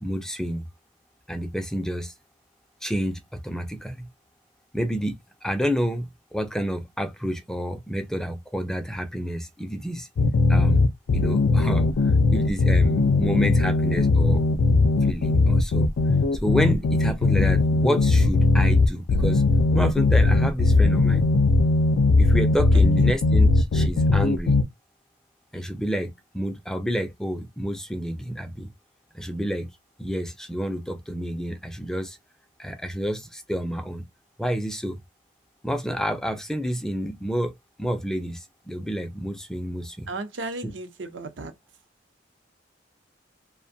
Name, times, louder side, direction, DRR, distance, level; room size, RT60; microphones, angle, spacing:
voice 1, 0.0-0.6 1.3-2.1 2.8-4.1 4.7-5.2 5.4-10.1 10.5-10.8 11.1-14.4 15.0-15.9 16.3-19.4 19.7-21.2 22.2-24.6 25.5-28.7 29.1-29.7 30.0-32.2 32.6-34.0 34.4-35.0 35.6-40.1 40.6-40.7, equal, 5° left, 0.3 m, -29 dB
sound 1, 10.2-24.6, left 3 dB, 85° left, 0.4 m, -19 dB
voice 2, 40.1-41.5, right 2 dB, 90° right, 0.7 m, -34 dB
2.5 x 2.2 x 2.6 m
head